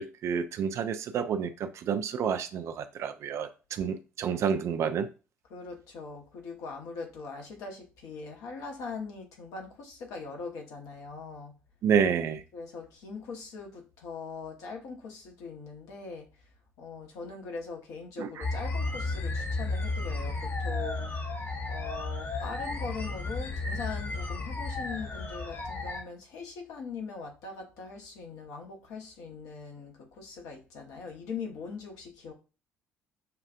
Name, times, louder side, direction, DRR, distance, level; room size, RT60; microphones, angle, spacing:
voice 1, 0.0-5.1 11.8-12.4 18.2-18.4, right 7 dB, 50° right, 0.4 m, -29 dB
voice 2, 5.5-11.5 12.5-16.3 16.8-21.1 21.7-32.3, left 4 dB, 60° left, 1.0 m, -41 dB
sound 1, 18.4-26.0, left 3 dB, 35° left, 0.9 m, -33 dB
6.6 x 2.4 x 2.4 m
figure-of-eight pair, 50°, 6 cm